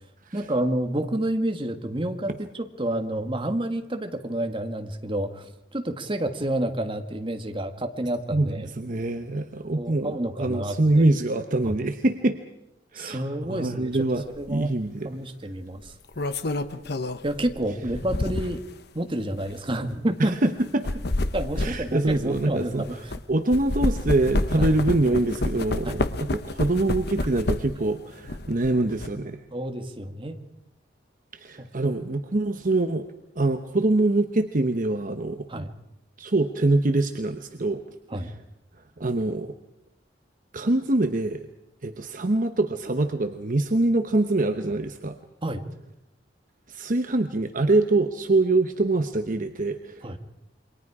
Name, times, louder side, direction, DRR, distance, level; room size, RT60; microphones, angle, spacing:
voice 1, 0.3-5.5 5.7-8.7 9.8-11.0 11.6-11.8 12.9-14.1 14.4-14.7 15.0-15.9 17.2-18.6 18.9-20.3 21.3-22.9 24.6-24.7 25.8-26.0 29.5-30.4 31.6-31.9 35.5-35.7 38.1-38.3 45.4-45.6 50.0-50.2, right 1 dB, 30° right, 6 dB, 1.8 m, -29 dB
voice 2, 8.3-12.4 12.9-15.1 20.2-20.8 21.6-22.9 23.3-29.4 31.3-33.1 33.4-35.7 36.2-37.8 38.2-38.3 39.0-39.5 40.5-41.5 41.8-45.2 46.7-50.1, right 2 dB, 45° right, 7 dB, 1.0 m, -24 dB
sound 1, 14.3-14.5 15.8-18.7 19.4-19.5 20.6-23.2 23.5-27.9 28.2-29.1, left 2 dB, 60° left, 1.1 m, -29 dB
28.5 x 23.5 x 4.9 m, 0.87 s
head